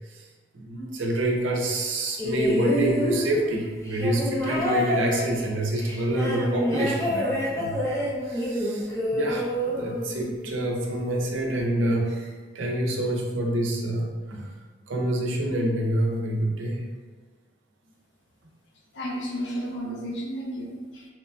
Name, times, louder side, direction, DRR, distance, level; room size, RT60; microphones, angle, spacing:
voice 1, 0.5-14.5 14.9-16.8, right 1 dB, 80° right, 0 dB, 0.5 m, -27 dB
sound 1, 2.2-10.6 11.6-11.7, equal, 15° left, 0.4 m, -28 dB
voice 2, 18.9-21.1, equal, 65° left, 0 dB, 0.5 m, -32 dB
2.9 x 2.4 x 2.3 m, 1.4 s
head